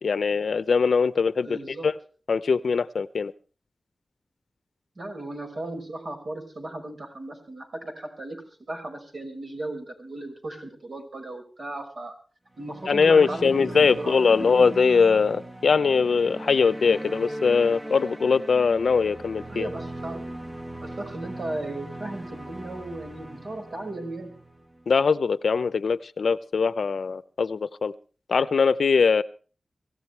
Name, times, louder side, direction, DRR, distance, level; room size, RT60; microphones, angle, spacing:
voice 1, 0.0-1.9 2.3-3.3 12.9-19.7 24.9-27.9 28.3-29.2, left 5 dB, 85° left, 15 dB, 0.7 m, -22 dB
voice 2, 1.4-1.9 5.0-8.4 8.7-12.1 12.6-14.7 19.5-20.3 20.8-24.3, right 2 dB, 60° right, 3 dB, 5.5 m, -36 dB
sound 1, 12.5-25.0, right 1 dB, 25° right, 1.3 m, -39 dB
25.0 x 15.5 x 3.4 m, 0.39 s
wide cardioid pair, 75°, 0 cm